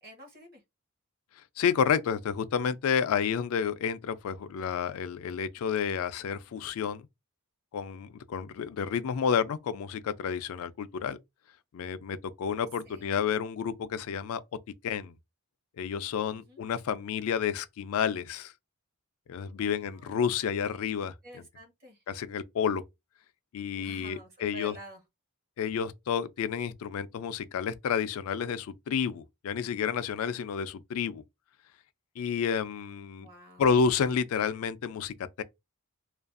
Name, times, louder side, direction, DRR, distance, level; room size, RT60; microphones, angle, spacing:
voice 1, 0.0-0.6 12.8-13.1 16.3-16.6 19.4-20.3 21.2-22.0 23.7-25.0 33.2-33.6, equal, 45° right, 0.8 m, -49 dB
voice 2, 1.6-7.1 7.7-11.2 11.7-14.4 14.8-15.1 15.8-18.5 19.3-21.1 22.1-22.8 23.5-24.7 25.6-31.2 32.2-33.3 33.6-35.4, left 7 dB, 70° left, 0.3 m, -30 dB
2.5 x 2.2 x 2.4 m
head